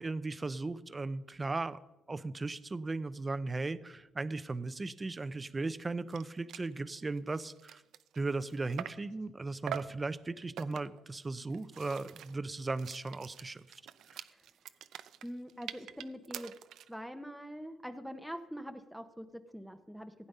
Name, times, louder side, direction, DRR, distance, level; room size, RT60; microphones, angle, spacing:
voice 1, 0.0-1.8 2.1-7.8 8.1-13.6 14.1-14.2, right 3 dB, 25° right, 14 dB, 0.7 m, -37 dB
sound 1, 5.8-5.9 6.1-6.2 6.5-6.7 7.2-9.1 9.7-10.0 10.6-11.0 11.5-16.9, right 10 dB, 75° right, 0.6 m, -45 dB
voice 2, 15.2-16.5 16.9-20.1, equal, ahead, 8 dB, 0.9 m, -44 dB
15.5 x 8.7 x 5.5 m, 1.0 s
cardioid pair, 90°, 0 cm